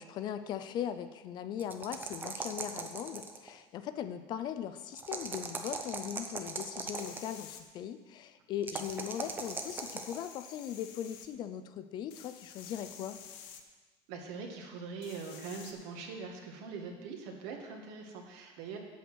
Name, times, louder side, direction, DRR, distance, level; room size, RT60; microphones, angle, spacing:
voice 1, 0.0-13.2, left 9 dB, 40° left, 11 dB, 0.5 m, -39 dB
sound 1, 1.6-3.5 4.9-7.3 8.6-10.2, right 4 dB, 15° right, 0.7 m, -39 dB
sound 2, 6.9-7.6 8.8-11.3 12.1-13.6 15.0-15.7, left 8 dB, 75° left, 1.0 m, -50 dB
voice 2, 14.1-18.8, right 5 dB, 70° right, 2 dB, 1.8 m, -42 dB
8.2 x 7.7 x 6.2 m, 1.4 s
cardioid pair, 170°, 12 cm